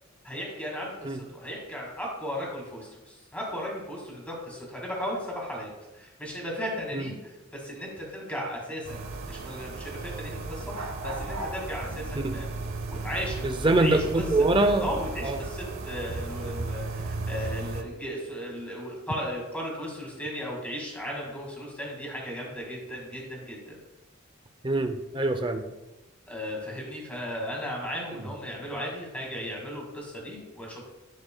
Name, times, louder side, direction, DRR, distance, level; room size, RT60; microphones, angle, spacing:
voice 1, 0.2-12.5 12.9-14.3 14.6-23.8 26.3-30.8, equal, 5° left, -2 dB, 1.9 m, -36 dB
sound 1, 8.8-17.8, right 3 dB, 80° right, 0.7 m, -35 dB
voice 2, 13.4-14.8 15.2-15.4 24.6-25.6 28.1-28.2, right 2 dB, 25° right, 7 dB, 0.5 m, -24 dB
10.5 x 6.2 x 2.2 m, 1.0 s
head